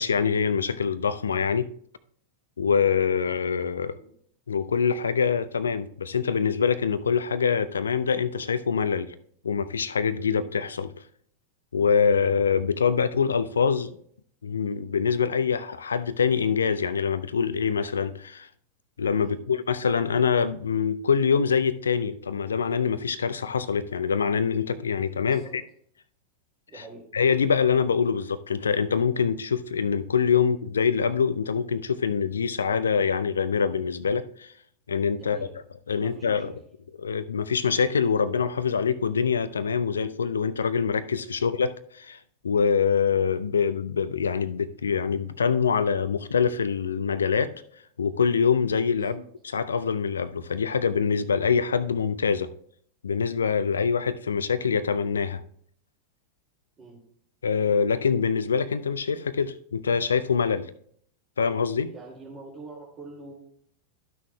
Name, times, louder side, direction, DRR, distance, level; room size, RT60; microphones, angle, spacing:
voice 1, 0.0-1.7 2.6-4.0 4.5-9.1 9.4-10.9 11.7-13.9 14.4-18.5 19.0-25.6 27.1-34.5 34.9-35.4 35.9-36.5 37.0-42.2 42.4-47.5 48.0-49.2 49.5-52.5 53.0-55.4 57.4-60.7 61.4-61.9, left 6 dB, 70° left, 0.5 m, -24 dB
voice 2, 25.2-25.5 26.7-27.0 30.4-30.5 35.2-35.5 36.0-36.5 41.3-41.5 48.9-49.2 56.8-57.0 61.9-63.4, right 3 dB, 25° right, 2.2 m, -45 dB
13.5 x 6.3 x 2.2 m
figure-of-eight pair, 90°, 0 cm